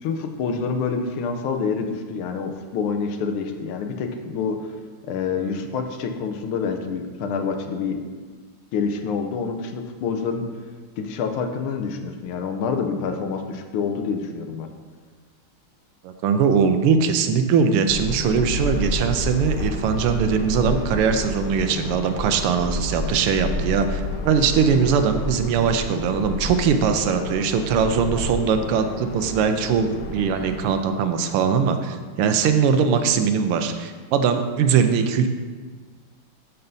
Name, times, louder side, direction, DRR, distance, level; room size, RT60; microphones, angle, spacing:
voice 1, 0.0-4.7 5.0-8.0 8.7-10.4 11.0-14.7, left 5 dB, 85° left, 6 dB, 1.5 m, -27 dB
voice 2, 16.0-35.3, right 6 dB, 90° right, 7 dB, 1.6 m, -21 dB
sound 1, 17.9-30.7, left 1 dB, 65° left, 0.9 m, -30 dB
12.0 x 5.5 x 2.7 m, 1.5 s
omnidirectional pair, 2.4 m